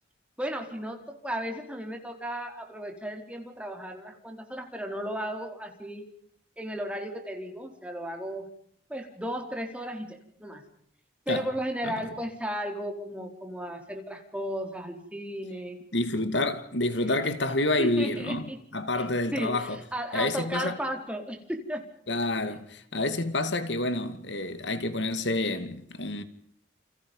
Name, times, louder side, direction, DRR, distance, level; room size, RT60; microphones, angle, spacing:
voice 1, 0.4-6.1 6.6-8.5 8.9-10.6 11.3-15.8 17.8-18.6 19.3-21.8, equal, 5° right, 4.5 m, -35 dB
voice 2, 15.9-19.8 20.1-20.7 22.1-26.2, left 2 dB, 80° left, 2.3 m, -28 dB
29.5 x 29.5 x 5.6 m
head